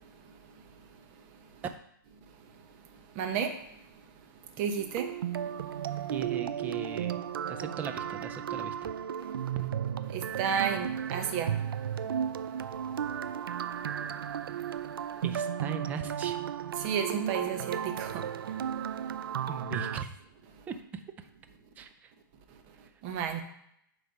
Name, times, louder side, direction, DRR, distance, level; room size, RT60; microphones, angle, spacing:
voice 1, 3.2-3.5 4.6-5.1 10.1-11.6 16.8-18.2 23.0-23.4, right 7 dB, 30° right, 0.9 m, -31 dB
sound 1, 4.8-20.0, right 9 dB, 85° right, 0.4 m, -34 dB
voice 2, 6.1-8.9 15.2-16.4 19.5-20.1 20.7-20.8 21.8-22.1, right 6 dB, 15° right, 0.5 m, -39 dB
8.5 x 3.4 x 5.4 m
hypercardioid pair, 155°, 12 cm